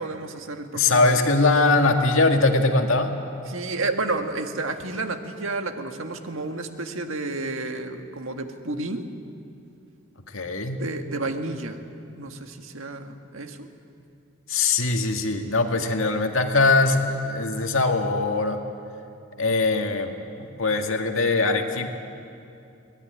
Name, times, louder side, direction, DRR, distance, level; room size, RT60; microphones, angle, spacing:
voice 1, 0.0-1.4 3.5-9.1 10.8-11.8 12.2-13.7, right 3 dB, 75° right, 5 dB, 1.7 m, -31 dB
voice 2, 0.7-3.2 10.3-10.8 14.5-18.6 19.4-20.1 20.4-21.9, left 3 dB, 75° left, 3 dB, 2.1 m, -21 dB
23.5 x 18.5 x 9.7 m, 2.6 s
head